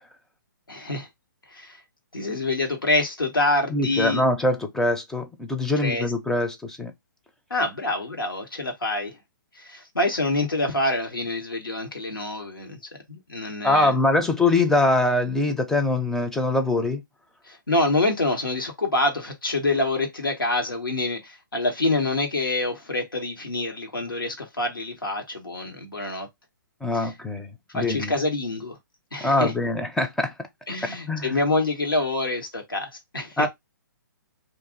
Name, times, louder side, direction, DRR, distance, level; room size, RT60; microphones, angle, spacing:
voice 1, 0.7-1.1 1.5-1.8 2.1-4.2 5.8-6.1 7.5-9.2 9.6-12.8 13.1-14.0 17.5-26.3 26.9-27.1 27.7-28.8 29.1-29.5 30.7-33.5, left 2 dB, 90° left, 1.3 m, -26 dB
voice 2, 3.7-6.9 13.6-17.0 26.8-28.1 29.2-30.3 30.8-31.3 33.4-33.5, left 2 dB, 5° left, 0.5 m, -23 dB
2.6 x 2.5 x 3.8 m
figure-of-eight pair, 130°, 11 cm